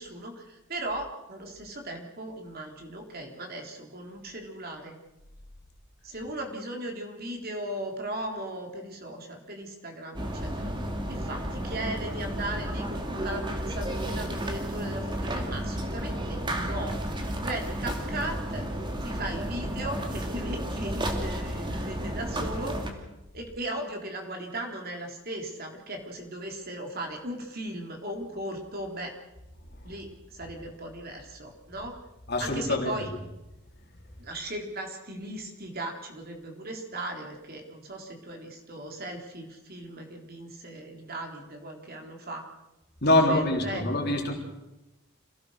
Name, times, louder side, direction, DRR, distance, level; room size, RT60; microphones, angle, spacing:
voice 1, 0.0-4.9 6.0-10.7 11.1-17.0 17.4-18.7 19.0-22.7 23.3-29.1 29.8-32.0 32.4-33.1 34.2-42.5 43.0-43.9, right 1 dB, 45° right, 2 dB, 3.8 m, -37 dB
sound 1, 10.1-22.9, right 1 dB, 20° right, 2.7 m, -32 dB
voice 2, 32.3-33.2 43.0-44.3, left 1 dB, 50° left, 1 dB, 4.1 m, -25 dB
27.5 x 17.5 x 6.6 m, 0.98 s
head